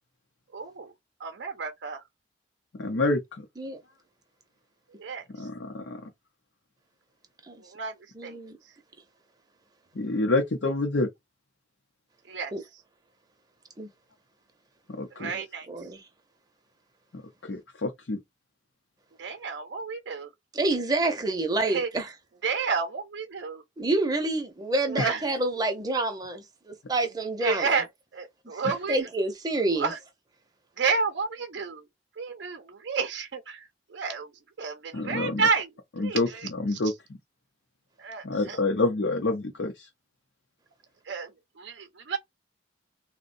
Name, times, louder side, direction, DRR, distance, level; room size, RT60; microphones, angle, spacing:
voice 1, 0.5-0.9 1.2-2.0 5.0-5.2 7.7-7.9 8.2-8.4 12.3-12.5 15.1-15.7 19.2-20.3 21.7-21.9 22.4-23.6 24.9-25.2 27.4-27.9 28.1-29.0 29.8-30.0 30.8-31.8 32.2-33.7 33.9-34.3 34.6-35.7 36.0-36.5 38.0-38.6 41.1-41.3 41.6-42.2, right 5 dB, 75° right, 0.5 m, -30 dB
voice 2, 2.7-3.4 5.4-6.1 9.9-11.1 14.9-15.3 17.1-18.2 25.0-25.1 28.6-28.7 34.9-35.5 36.0-36.9 38.2-39.9, left 2 dB, 80° left, 0.6 m, -28 dB
voice 3, 8.1-8.6 12.5-12.6 13.8-13.9 15.3-16.0 20.5-22.1 23.8-27.7 28.5-28.6 28.9-29.9, right 2 dB, 20° right, 0.7 m, -28 dB
3.6 x 2.1 x 2.5 m
head